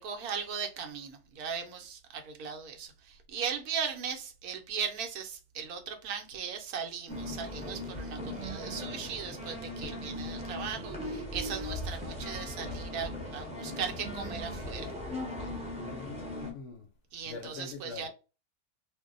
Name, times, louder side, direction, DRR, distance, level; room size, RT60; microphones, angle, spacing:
voice 1, 0.0-14.9 17.1-18.1, right 7 dB, 75° right, 1.1 m, -38 dB
sound 1, 7.1-16.5, left 1 dB, 5° right, 0.7 m, -38 dB
voice 2, 15.8-16.9 17.3-18.1, left 4 dB, 65° left, 0.8 m, -43 dB
2.6 x 2.1 x 3.7 m
omnidirectional pair, 1.6 m